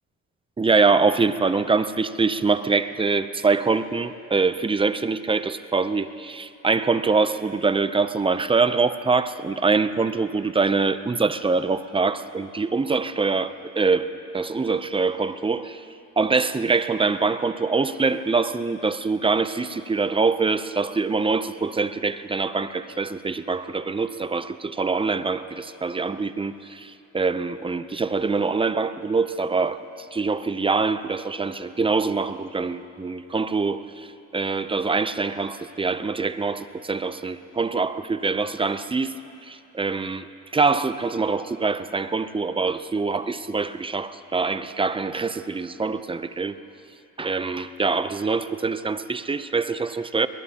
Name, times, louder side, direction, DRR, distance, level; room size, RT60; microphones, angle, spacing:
voice 1, 0.6-15.9 16.2-39.1 39.4-40.3 40.5-46.6 47.2-50.3, right 4 dB, 20° right, 12 dB, 0.6 m, -24 dB
22.5 x 20.5 x 2.9 m, 2.7 s
cardioid pair, 90°, 30 cm